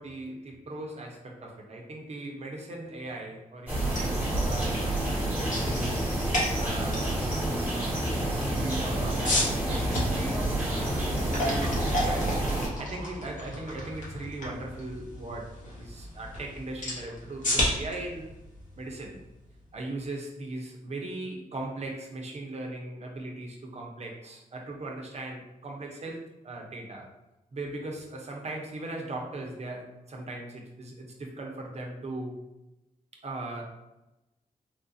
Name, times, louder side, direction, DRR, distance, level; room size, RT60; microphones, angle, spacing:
voice 1, 0.0-6.0 6.5-8.1 8.5-12.4 12.8-18.3 18.8-19.2 19.7-27.1 27.5-32.4 33.1-33.6, right 2 dB, 50° right, 0 dB, 0.8 m, -39 dB
sound 1, 3.7-12.7, right 1 dB, 10° right, 1.4 m, -29 dB
sound 2, 3.8-19.7, left 1 dB, 60° left, 1.1 m, -34 dB
3.6 x 2.4 x 2.7 m, 0.97 s
cardioid pair, 60°, 14 cm